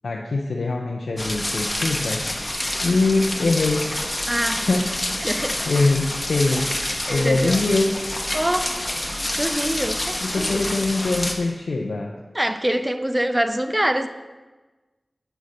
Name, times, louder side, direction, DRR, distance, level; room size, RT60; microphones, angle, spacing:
voice 1, 0.0-2.3 2.8-3.9 4.5-4.8 5.7-6.7 7.1-8.0 10.2-12.1, left 3 dB, 90° left, 0 dB, 0.5 m, -22 dB
sound 1, 1.2-11.3, left 1 dB, 25° left, 0.9 m, -27 dB
voice 2, 4.3-4.7 5.2-5.6 7.1-7.6 8.3-8.8 9.4-10.6 12.3-14.1, right 1 dB, 15° right, 10 dB, 0.5 m, -24 dB
7.9 x 6.3 x 4.1 m, 1.2 s
cardioid pair, 45°, 0 cm